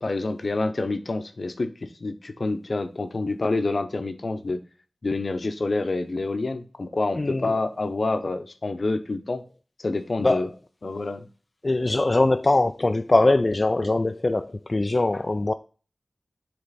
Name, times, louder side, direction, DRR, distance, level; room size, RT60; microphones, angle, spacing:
voice 1, 0.0-4.6 5.0-9.4 9.8-10.5 10.8-11.3, left 3 dB, 65° left, 0.8 m, -27 dB
voice 2, 7.1-7.5 10.2-10.5 11.6-15.5, left 2 dB, 45° left, 0.3 m, -22 dB
8.0 x 3.3 x 4.1 m
cardioid pair, 45°, 0 cm